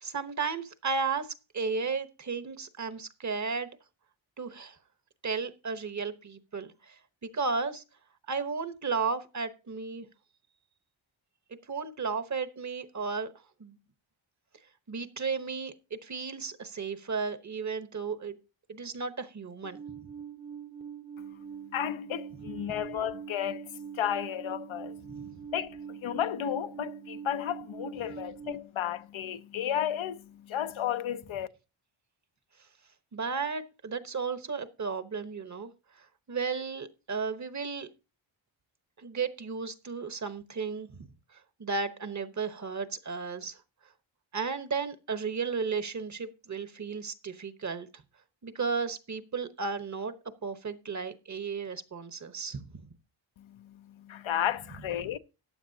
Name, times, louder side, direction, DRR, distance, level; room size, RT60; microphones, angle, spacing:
voice 1, 0.0-3.7 4.4-4.8 5.2-7.8 8.3-10.1 11.7-13.3 13.6-13.8 14.9-18.3 18.7-19.8 25.1-25.3 33.1-35.7 36.0-37.9 39.0-41.0 41.3-43.6 44.3-47.9 48.4-50.1 50.4-52.8, right 5 dB, 35° right, 1.0 m, -34 dB
Alarm, 19.6-28.5, right 8 dB, 15° right, 0.7 m, -43 dB
voice 2, 21.7-23.7 23.9-25.0 25.5-30.2 30.5-31.5 53.6-53.7 54.1-55.2, left 10 dB, 75° left, 0.7 m, -33 dB
14.5 x 9.4 x 2.8 m
wide cardioid pair, 110°, 48 cm